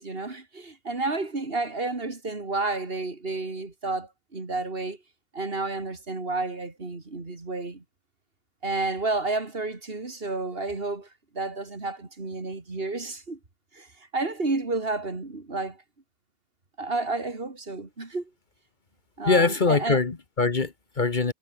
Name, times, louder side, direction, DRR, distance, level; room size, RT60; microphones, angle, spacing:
voice 1, 0.0-5.0 5.3-7.8 8.6-11.1 11.3-13.4 13.7-15.8 16.8-18.3 19.2-20.0, right 3 dB, 60° right, 3.0 m, -31 dB
voice 2, 19.3-21.3, left 4 dB, 45° left, 1.4 m, -23 dB
omnidirectional pair, 1.1 m